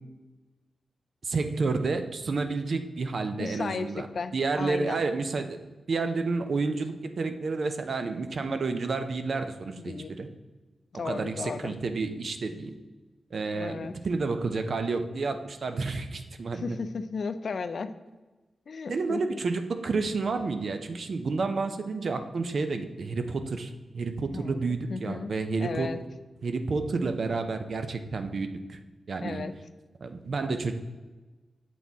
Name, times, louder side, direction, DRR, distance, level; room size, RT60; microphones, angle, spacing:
voice 1, 1.2-4.1 4.3-5.6 5.9-10.3 11.0-12.7 13.3-16.8 18.9-25.9 26.4-28.8 29.1-29.5 30.0-30.7, right 4 dB, 60° right, 8 dB, 0.5 m, -30 dB
voice 2, 3.4-5.0 9.8-10.1 10.9-11.7 13.5-13.9 16.5-17.9 18.7-19.4 24.3-25.3 25.6-26.0 29.2-29.5, left 4 dB, 60° left, 10 dB, 0.3 m, -35 dB
7.5 x 4.1 x 3.5 m, 1.2 s
wide cardioid pair, 120°, 0 cm